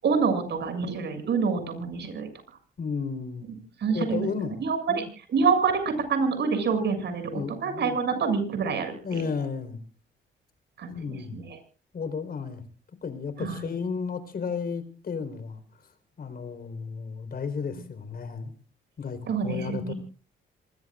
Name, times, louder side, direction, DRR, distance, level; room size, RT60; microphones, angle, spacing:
voice 1, 0.0-2.3 3.8-4.3 4.6-5.0 5.3-9.2 10.8-11.6 13.4-13.6 19.3-19.9, right 5 dB, 60° right, 7 dB, 7.3 m, -27 dB
voice 2, 2.8-3.5 3.9-4.6 4.9-5.1 7.3-7.9 9.0-9.8 10.9-11.4 11.9-12.6 13.0-15.6 16.2-18.5 19.0-19.9, left 5 dB, 50° left, 10 dB, 4.2 m, -33 dB
27.0 x 21.5 x 2.5 m, 0.37 s
cardioid pair, 90°, 20 cm